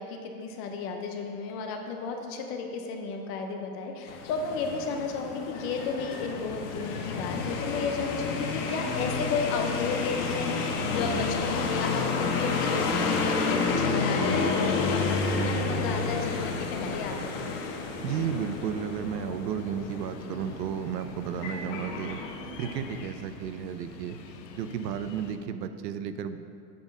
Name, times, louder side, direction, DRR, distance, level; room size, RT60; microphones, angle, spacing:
voice 1, 0.0-17.5, left 4 dB, 30° left, 4 dB, 0.5 m, -33 dB
sound 1, 4.1-23.0, left 4 dB, 45° left, 1.1 m, -30 dB
sound 2, 6.3-25.4, left 6 dB, 80° left, 1.0 m, -47 dB
voice 2, 18.0-22.2 22.6-24.2 24.5-26.4, right 8 dB, 75° right, 10 dB, 0.7 m, -33 dB
8.8 x 5.3 x 5.2 m, 2.4 s
supercardioid pair, 140°, 50 cm